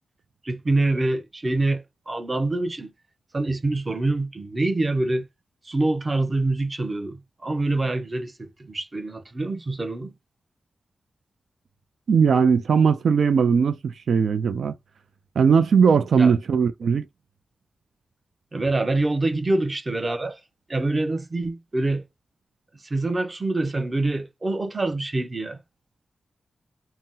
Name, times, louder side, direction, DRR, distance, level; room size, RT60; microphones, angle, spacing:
voice 1, 0.4-2.9 3.3-5.3 5.6-10.1 16.2-16.3 18.5-20.4 20.7-22.1 22.8-25.6, right 2 dB, 30° right, 0.6 m, -25 dB
voice 2, 12.1-14.7 15.4-17.0, right 6 dB, 85° right, 0.3 m, -19 dB
2.7 x 2.0 x 3.6 m
wide cardioid pair, 100°, 0 cm